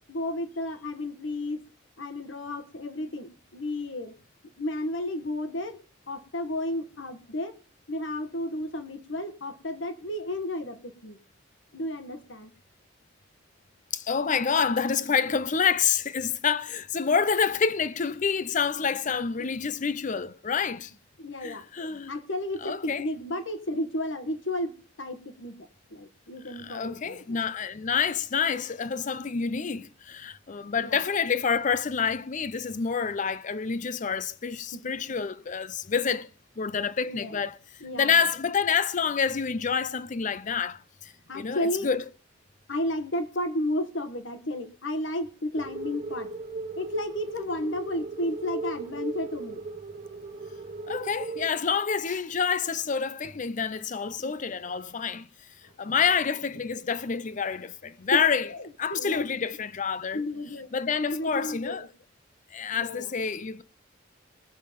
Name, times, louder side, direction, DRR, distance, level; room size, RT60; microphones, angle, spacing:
voice 1, 0.1-1.6 2.0-4.1 4.6-5.8 6.1-7.5 7.9-11.2 11.7-12.5 19.4-19.5 19.7-19.8 21.2-25.5 25.9-27.4 30.8-31.1 34.7-35.2 37.0-37.4 37.8-38.3 41.3-41.9 42.7-46.3 46.8-49.6 54.2-54.3 55.9-56.1 58.1-59.2 60.1-60.7 61.0-61.9 62.7-63.1, left 1 dB, 75° left, 1.3 m, -33 dB
voice 2, 13.9-20.9 21.4-22.1 22.6-23.1 26.5-36.3 36.6-37.6 38.0-42.0 50.9-55.3 55.8-58.5 58.8-60.2 60.7-61.9 62.5-63.6, left 6 dB, 40° left, 0.5 m, -28 dB
sound 1, 45.5-51.5, right 3 dB, 35° right, 1.2 m, -37 dB
20.0 x 7.2 x 5.1 m
head